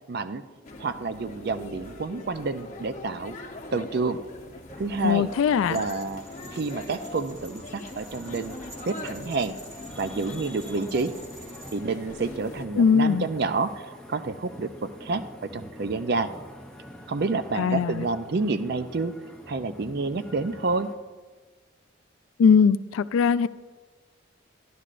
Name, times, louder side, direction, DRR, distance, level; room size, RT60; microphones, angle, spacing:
voice 1, 0.1-0.4 0.8-3.3 3.7-4.2 4.8-5.3 5.7-6.2 6.5-8.6 8.9-9.6 10.0-11.1 11.7-15.2 15.5-16.3 17.1-19.2 19.5-20.9, right 3 dB, 50° right, 0.4 m, -29 dB
sound 1, 0.6-12.7, left 2 dB, 35° left, 0.9 m, -42 dB
sound 2, 4.7-21.0, left 1 dB, 5° left, 0.6 m, -46 dB
voice 2, 5.0-5.8 12.8-13.3 17.6-18.0 22.4-23.5, left 6 dB, 80° left, 0.3 m, -20 dB
sound 3, 5.6-11.8, right 1 dB, 30° right, 1.5 m, -49 dB
13.5 x 11.0 x 2.5 m
head